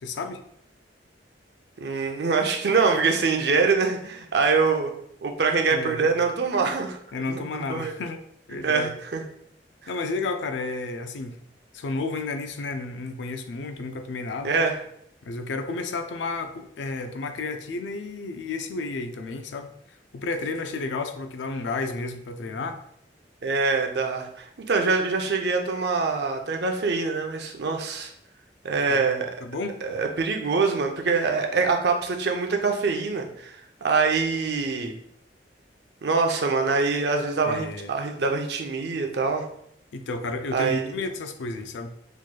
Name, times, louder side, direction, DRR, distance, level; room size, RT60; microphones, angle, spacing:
voice 1, 0.0-0.4 5.7-6.1 7.1-8.2 8.5-9.0 9.9-11.4 11.7-14.5 15.2-19.7 20.1-22.8 28.9-29.0 29.4-29.8 37.5-37.9 39.9-41.9, left 3 dB, 85° left, 8 dB, 0.4 m, -32 dB
voice 2, 1.8-4.9 5.2-7.0 7.3-7.9 8.6-9.2 14.4-14.8 23.4-28.1 28.6-29.3 29.8-35.0 36.0-39.4 40.5-40.9, right 4 dB, 65° right, 3 dB, 0.5 m, -24 dB
4.5 x 3.0 x 2.2 m, 0.70 s
head